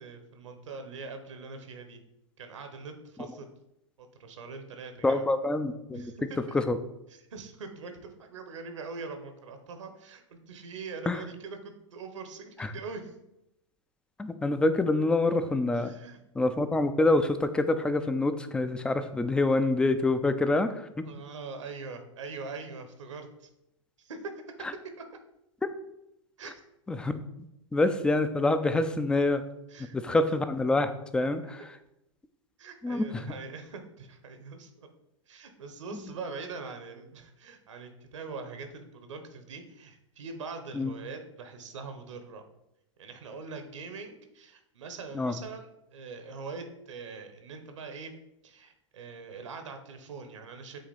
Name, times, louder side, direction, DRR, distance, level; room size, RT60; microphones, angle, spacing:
voice 1, 0.0-2.0 2.4-3.5 4.0-5.3 5.9-6.4 7.1-13.1 15.8-16.2 21.1-23.5 24.0-24.3 26.4-26.5 29.7-30.0 32.6-34.9 35.3-42.4 43.0-48.1 48.4-50.8, right 4 dB, 70° right, 7 dB, 1.0 m, -42 dB
voice 2, 5.0-6.1 6.5-6.8 11.1-11.2 12.6-12.7 14.2-15.9 16.3-21.1 25.6-25.7 26.9-27.2 27.7-29.4 29.8-31.6 32.8-33.2 40.7-40.9 45.1-45.3, left 2 dB, 5° left, 10 dB, 0.4 m, -26 dB
7.7 x 2.9 x 4.1 m, 0.84 s
figure-of-eight pair, 105°, 16 cm